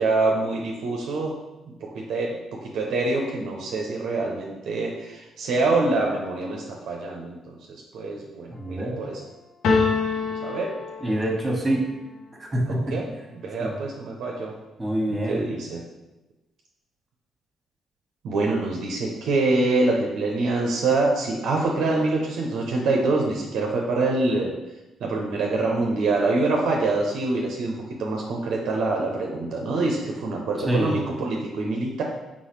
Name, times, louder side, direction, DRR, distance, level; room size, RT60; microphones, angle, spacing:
voice 1, 0.0-1.3 1.9-2.4 2.7-7.4 7.7-9.2 10.4-10.7 12.9-14.5 15.3-15.8 18.2-24.5 25.0-27.7 28.0-32.0, right 3 dB, 65° right, -1 dB, 0.6 m, -25 dB
voice 2, 8.5-9.0 11.0-11.8 12.5-13.0 13.6-13.7 14.8-15.4 30.6-31.0, right 1 dB, 20° right, -1 dB, 1.3 m, -25 dB
sound 1, 9.6-11.6, left 4 dB, 70° left, 0.6 m, -25 dB
3.9 x 3.6 x 3.1 m, 1.0 s
hypercardioid pair, 45°, 0 cm